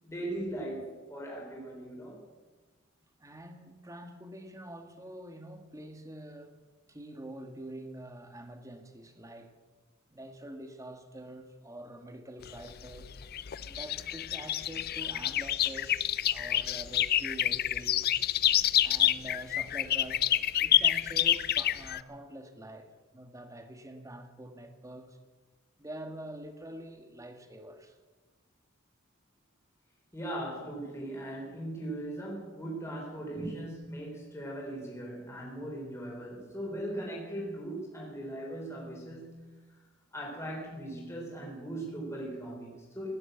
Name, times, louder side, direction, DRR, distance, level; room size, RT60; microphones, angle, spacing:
voice 1, 0.0-2.2 30.1-39.6 40.1-43.1, right 1 dB, 15° left, 3.9 m, -39 dB
voice 2, 3.2-6.5 6.9-9.5 10.1-13.1 13.6-18.1 18.8-25.2 25.8-28.0 33.3-33.5, right 1 dB, 15° right, 1.6 m, -45 dB
sound 1, 12.4-22.0, left 11 dB, 50° left, 0.5 m, -28 dB
16.5 x 11.0 x 7.9 m
head